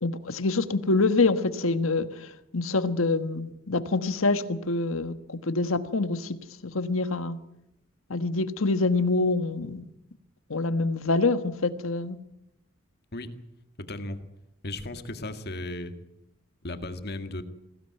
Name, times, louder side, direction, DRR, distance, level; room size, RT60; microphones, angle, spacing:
voice 1, 0.0-2.1 2.5-6.4 6.7-7.4 8.1-9.9 10.5-12.2, left 3 dB, 80° left, 11 dB, 1.4 m, -26 dB
voice 2, 13.8-14.2 14.6-15.9 16.6-17.4, left 2 dB, 50° left, 8 dB, 1.9 m, -35 dB
21.5 x 16.5 x 9.1 m, 0.85 s
head